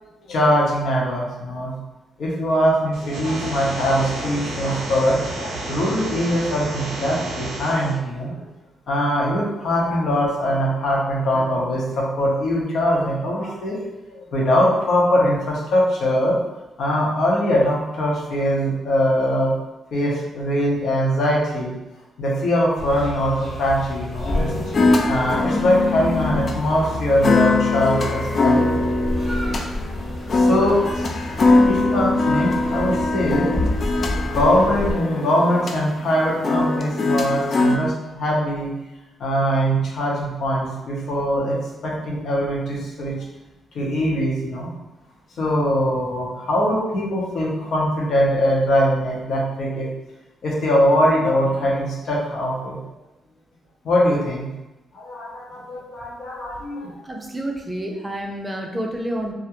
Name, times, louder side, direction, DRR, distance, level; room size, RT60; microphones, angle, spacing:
voice 1, 0.3-1.7 2.2-8.5 8.9-16.4 16.8-19.5 19.9-21.7 22.2-24.6 25.1-28.9 30.3-31.0 31.3-38.7 39.2-41.6 41.8-43.1 43.7-44.7 45.4-49.9 50.4-52.8 53.8-54.5 54.9-56.9, equal, 70° left, -4 dB, 0.8 m, -22 dB
sound 1, 2.9-7.9, right 2 dB, 80° right, 0.6 m, -31 dB
sound 2, 22.8-34.9, left 1 dB, 25° left, 1.1 m, -30 dB
sound 3, 24.3-37.8, left 3 dB, 50° left, 0.4 m, -22 dB
voice 2, 57.0-59.3, right 1 dB, 15° right, 1 dB, 0.5 m, -29 dB
2.4 x 2.1 x 2.9 m, 1.0 s
supercardioid pair, 55°, 0 cm